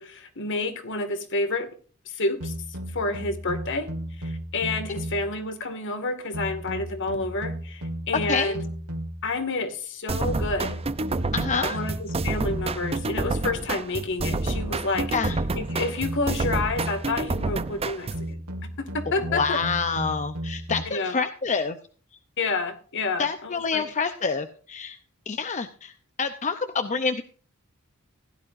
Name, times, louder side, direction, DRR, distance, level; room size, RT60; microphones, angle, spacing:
voice 1, 0.0-1.7 2.1-2.5 2.9-8.6 9.2-10.8 11.5-15.1 15.5-19.6 20.9-21.2 22.4-23.8, left 3 dB, 55° left, 8 dB, 2.1 m, -29 dB
sound 1, 2.4-5.4 6.3-9.3 10.3-13.3 14.2-17.2 18.1-20.8, right 1 dB, 85° right, 1.8 m, -35 dB
sound 2, 10.1-18.3, right 3 dB, 25° right, 0.6 m, -29 dB
voice 2, 11.3-11.8 15.1-15.4 19.3-21.8 23.2-25.0 25.3-25.9 26.2-27.2, left 5 dB, 35° left, 9 dB, 0.7 m, -27 dB
16.0 x 11.5 x 2.6 m, 0.41 s
head